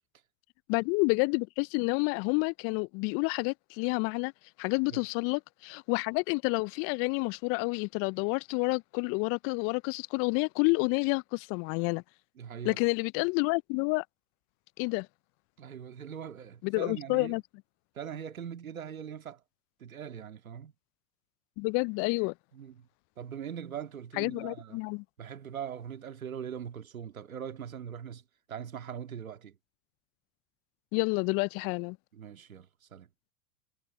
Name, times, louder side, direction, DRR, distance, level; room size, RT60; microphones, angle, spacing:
voice 1, 0.7-4.3 4.6-12.0 12.6-14.0 14.8-15.1 16.6-17.4 21.6-22.3 24.2-25.0 30.9-32.0, left 31 dB, 35° left, 0.4 m, -29 dB
voice 2, 12.4-12.8 15.6-17.3 18.0-19.4 19.8-20.7 22.5-22.9 23.2-24.8 25.2-28.2 28.5-29.6 32.1-33.1, right 8 dB, 85° right, 1.9 m, -41 dB
hypercardioid pair, 85°, 41 cm